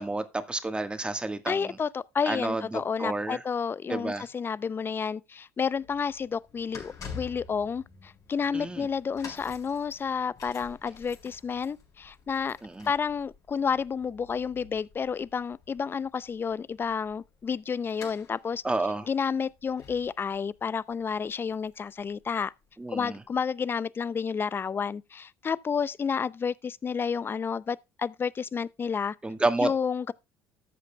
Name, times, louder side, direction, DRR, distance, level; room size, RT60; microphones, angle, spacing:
voice 1, 0.0-1.8 2.3-3.4 3.9-4.3 8.5-8.9 12.6-12.9 18.6-19.1 22.8-23.2 29.2-29.7, right 2 dB, 15° right, 1.5 m, -30 dB
voice 2, 1.5-12.6 12.9-18.6 19.1-22.5 22.9-29.2 29.6-30.1, left 6 dB, 30° left, 0.5 m, -30 dB
sound 1, 5.7-22.6 23.3-23.4, left 5 dB, 55° left, 4.6 m, -49 dB
13.5 x 8.1 x 2.3 m
hypercardioid pair, 65°, 7 cm